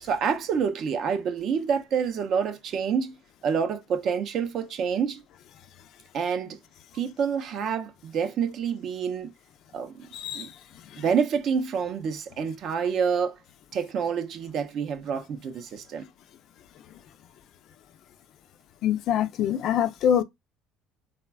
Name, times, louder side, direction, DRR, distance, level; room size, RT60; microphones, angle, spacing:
voice 1, 0.0-3.2 3.4-5.2 6.1-6.6 6.9-9.3 9.7-10.5 11.0-13.4 13.7-16.1, right 6 dB, 45° right, 0.4 m, -28 dB
voice 2, 10.1-10.5 18.8-20.2, left 9 dB, 55° left, 0.3 m, -24 dB
3.2 x 2.1 x 2.2 m
cardioid pair, 150°, 0 cm